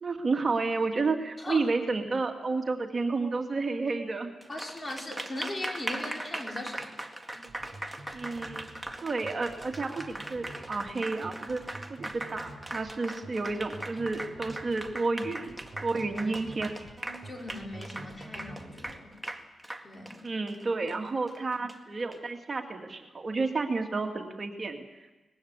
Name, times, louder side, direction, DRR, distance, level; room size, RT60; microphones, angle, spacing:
voice 1, 0.0-4.3 8.1-8.7 9.0-16.7 20.2-24.8, right 3 dB, 45° right, 3 dB, 2.3 m, -31 dB
Applause, 4.4-22.2, right 1 dB, 10° right, 2.0 m, -40 dB
voice 2, 4.5-6.9 15.9-16.0 17.2-19.1 19.8-20.2, left 1 dB, 30° left, 1 dB, 4.9 m, -39 dB
sound 1, 7.3-18.9, right 2 dB, 30° right, 7.5 m, -48 dB
20.5 x 16.0 x 9.6 m, 1.1 s
cardioid pair, 70°, 0 cm